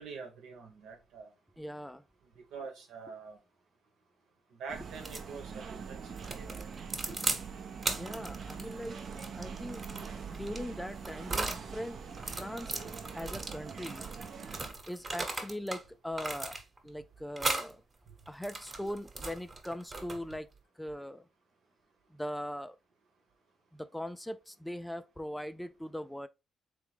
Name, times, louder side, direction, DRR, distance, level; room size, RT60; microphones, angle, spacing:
voice 1, 0.0-1.3 2.2-3.4 4.5-6.7 7.1-7.2, right 5 dB, 85° right, 1.3 m, -46 dB
voice 2, 1.6-2.0 8.0-9.1 9.4-9.9 10.3-12.0 12.4-12.8 13.1-14.1 14.9-16.6 16.8-17.8 18.3-20.5 20.8-21.2 22.1-22.8 23.7-26.3, left 1 dB, 5° left, 0.4 m, -40 dB
sound 1, 4.7-14.7, right 6 dB, 55° right, 0.7 m, -43 dB
sound 2, 4.9-5.3 6.2-7.4 7.8-11.6 12.1-15.8 16.1-16.9 17.4-17.7 18.2-20.4, right 3 dB, 30° right, 1.2 m, -37 dB
3.7 x 3.4 x 3.4 m
cardioid pair, 90°, 0 cm